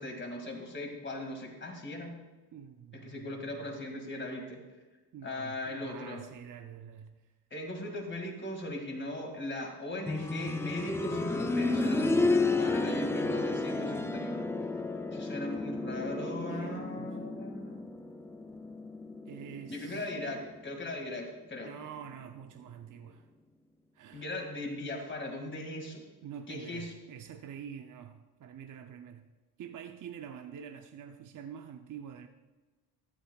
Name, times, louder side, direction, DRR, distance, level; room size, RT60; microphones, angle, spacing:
voice 1, 0.0-2.2 3.0-4.6 5.2-6.2 7.5-14.5 15.1-17.8 19.7-21.7 24.1-26.0 26.5-26.9, left 1 dB, 25° left, 2 dB, 2.2 m, -39 dB
voice 2, 2.5-3.8 5.1-7.1 16.1-17.3 19.3-20.4 21.6-23.3 23.9-24.3 26.2-29.3 29.6-32.3, right 8 dB, 50° right, 6 dB, 0.6 m, -47 dB
sound 1, 10.1-20.8 22.2-22.3, left 3 dB, 5° left, 0.3 m, -32 dB
14.0 x 12.0 x 2.3 m, 1.2 s
cardioid pair, 135°, 42 cm